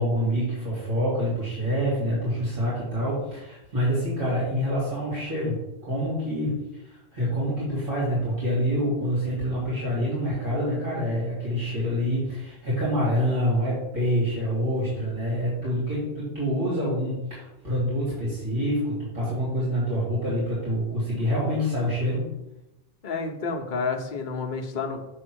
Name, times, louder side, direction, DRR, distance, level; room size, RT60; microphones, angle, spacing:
voice 1, 0.0-5.5 5.8-22.2, equal, 50° right, -9 dB, 3.0 m, -26 dB
voice 2, 23.0-25.0, left 4 dB, 50° left, 3 dB, 0.9 m, -30 dB
7.1 x 3.5 x 6.2 m, 0.90 s
omnidirectional pair, 1.2 m